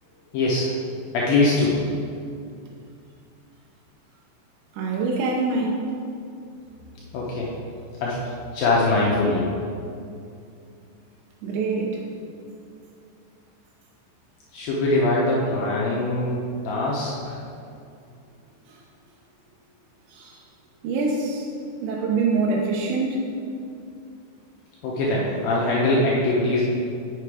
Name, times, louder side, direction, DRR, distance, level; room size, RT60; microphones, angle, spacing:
voice 1, 0.3-1.8 7.1-7.5 8.0-8.2 8.5-9.5 14.5-17.4 24.8-26.6, left 2 dB, 75° left, -5 dB, 2.3 m, -22 dB
voice 2, 4.7-5.9 11.4-12.0 20.1-20.4 20.8-21.5 21.8-23.2, right 3 dB, 85° right, -2 dB, 3.1 m, -24 dB
8.3 x 5.9 x 4.8 m, 2.4 s
omnidirectional pair, 5.0 m